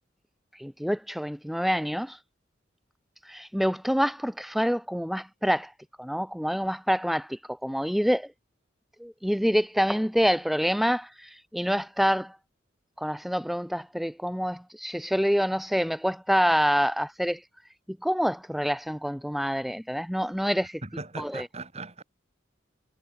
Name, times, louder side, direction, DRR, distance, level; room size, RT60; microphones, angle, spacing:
voice 1, 0.5-2.2 3.2-5.7 6.0-8.3 9.0-12.4 13.0-17.4 18.0-20.8 21.2-21.5, equal, ahead, 1.8 m, -27 dB
voice 2, 20.8-22.0, right 2 dB, 35° right, 6.9 m, -38 dB
head